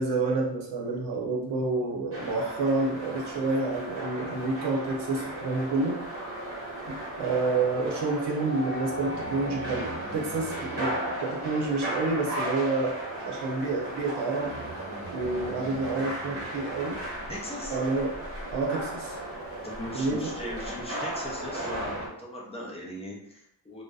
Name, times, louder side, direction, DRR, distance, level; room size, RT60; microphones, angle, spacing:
voice 1, 0.0-6.0 6.9-13.0 13.2-14.6 15.1-17.0 17.7-18.1 18.5-19.2 19.9-20.3, right 3 dB, 65° right, -1 dB, 0.7 m, -29 dB
sound 1, 2.1-22.1, right 1 dB, 30° right, 0.8 m, -36 dB
Wind instrument woodwind instrument, 8.4-12.3, left 1 dB, 75° left, 0.9 m, -42 dB
Breathing, 8.9-12.5 14.4-17.5, right 1 dB, 5° right, 1.1 m, -45 dB
voice 2, 17.3-17.8 19.6-23.8, left 1 dB, 15° left, -3 dB, 0.4 m, -39 dB
2.6 x 2.1 x 2.3 m, 0.71 s
wide cardioid pair, 170°, 44 cm